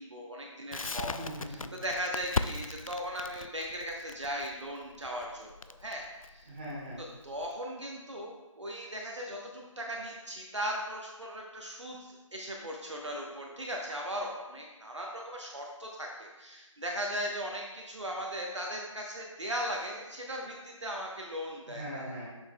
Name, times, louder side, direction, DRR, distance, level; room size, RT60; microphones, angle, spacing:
voice 1, 0.0-1.1 1.5-6.5 7.2-22.0, equal, 60° right, -1 dB, 1.0 m, -38 dB
Crackle, 0.7-7.5, left 4 dB, 85° left, 0.4 m, -38 dB
voice 2, 1.0-1.9 6.4-7.0 21.7-22.3, equal, 20° right, -7 dB, 1.7 m, -41 dB
7.3 x 6.5 x 2.2 m, 1.1 s
figure-of-eight pair, 165°, 17 cm